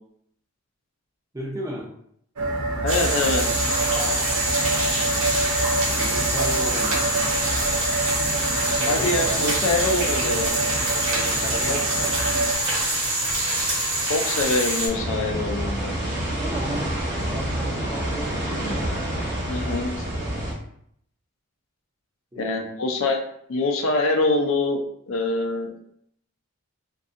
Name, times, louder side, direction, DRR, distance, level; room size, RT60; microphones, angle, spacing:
voice 1, 1.3-1.9 5.8-7.1 8.9-9.5 11.1-12.4 16.3-17.0 17.3-18.9 22.3-22.7, equal, 15° right, -3 dB, 0.5 m, -35 dB
sound 1, 2.4-12.5, right 2 dB, 90° right, 0.6 m, -27 dB
voice 2, 2.8-3.4 8.8-10.5 11.7-11.8 14.1-16.0 19.5-20.0 22.4-23.2 23.5-25.7, left 2 dB, 65° left, 3 dB, 0.4 m, -24 dB
sound 2, 2.9-14.9, right 1 dB, 70° right, 1.0 m, -25 dB
sound 3, 14.9-20.5, right 1 dB, 40° right, 1.2 m, -28 dB
2.6 x 2.3 x 2.5 m, 0.67 s
head